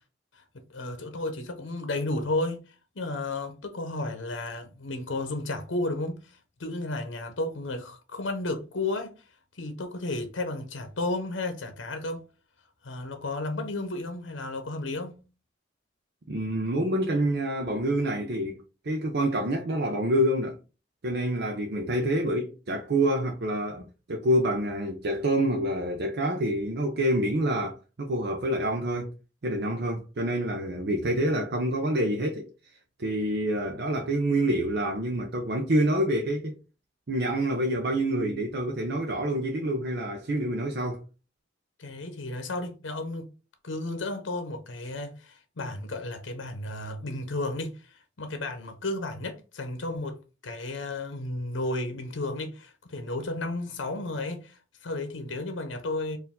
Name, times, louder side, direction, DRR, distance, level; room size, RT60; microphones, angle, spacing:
voice 1, 0.7-9.1 9.6-12.2 12.8-15.2 41.8-43.3 43.6-50.2 50.4-56.2, left 2 dB, 85° left, 0.8 m, -33 dB
voice 2, 16.3-20.6 21.0-29.1 29.4-32.5 33.0-36.6 37.1-41.0, right 1 dB, 60° right, 0.6 m, -27 dB
4.5 x 2.6 x 3.6 m
head